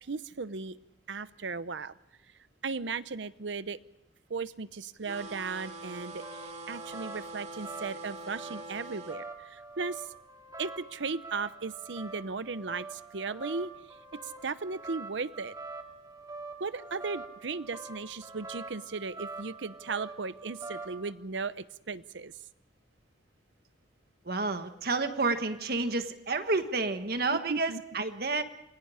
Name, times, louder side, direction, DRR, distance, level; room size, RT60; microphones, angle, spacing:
voice 1, 0.0-0.8 1.1-1.9 2.6-3.8 4.3-10.1 10.6-13.7 14.2-15.5 16.6-22.3 27.5-27.8, right 4 dB, 80° right, 15 dB, 0.8 m, -36 dB
sound 1, 5.0-9.2, right 2 dB, 40° right, 2.3 m, -44 dB
sound 2, 5.7-21.1, right 3 dB, 20° right, 2.5 m, -45 dB
voice 2, 24.2-28.4, right 3 dB, 55° right, 8 dB, 1.5 m, -30 dB
28.5 x 23.0 x 5.0 m, 0.80 s
head